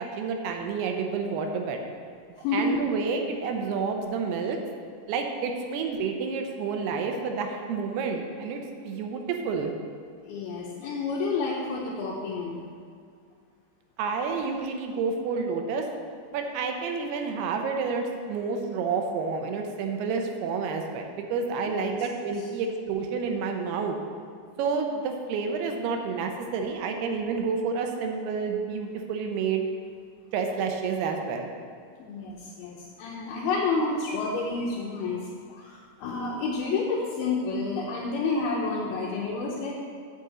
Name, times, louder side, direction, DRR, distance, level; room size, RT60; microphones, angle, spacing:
voice 1, 0.0-1.8 2.5-4.6 5.1-8.6 8.8-9.7 14.0-15.9 16.3-24.0 24.6-29.6 30.3-31.5, right 5 dB, 75° right, 3 dB, 2.6 m, -29 dB
voice 2, 2.4-2.8 10.2-12.6 21.7-22.0 32.0-35.2 35.5-39.7, left 3 dB, 75° left, -3 dB, 2.5 m, -29 dB
8.2 x 5.3 x 7.6 m, 2.2 s
omnidirectional pair, 5.0 m